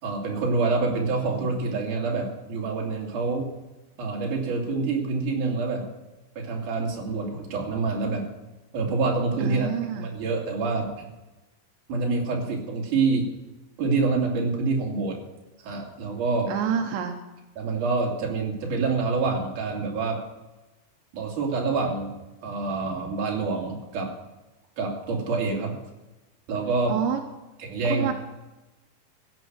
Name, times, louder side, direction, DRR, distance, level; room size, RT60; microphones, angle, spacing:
voice 1, 0.0-3.5 4.0-5.8 6.4-8.2 8.7-9.7 10.0-10.9 11.9-13.2 13.8-15.2 15.6-16.5 17.6-20.2 21.1-22.1 22.4-24.1 24.8-25.8 26.5-27.0 27.6-28.1, right 4 dB, 50° right, -1 dB, 3.8 m, -26 dB
voice 2, 9.4-10.1 16.5-17.1 26.9-27.2 27.9-28.1, right 8 dB, 80° right, 4 dB, 3.2 m, -28 dB
16.0 x 9.3 x 6.2 m, 1.1 s
omnidirectional pair, 5.0 m